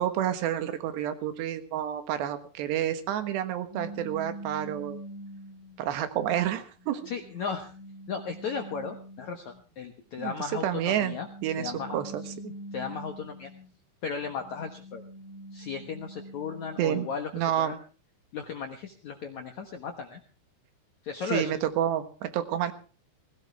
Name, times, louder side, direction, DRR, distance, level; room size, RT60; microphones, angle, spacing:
voice 1, 0.0-5.0 5.8-7.0 10.2-10.3 10.6-11.2 11.4-12.5 16.8-17.1 17.3-17.7 21.3-22.7, right 11 dB, 70° right, 9 dB, 3.4 m, -29 dB
sound 1, 3.7-5.9 6.5-9.6 10.8-13.7 14.2-17.2, right 1 dB, 5° right, 3.7 m, -44 dB
voice 2, 7.0-7.7 8.1-11.3 11.6-12.0 12.7-13.5 14.0-15.0 15.5-17.3 17.6-17.8 18.3-20.2 21.0-21.5, left 6 dB, 75° left, 5 dB, 1.7 m, -35 dB
19.5 x 16.5 x 3.4 m, 0.38 s
omnidirectional pair, 5.5 m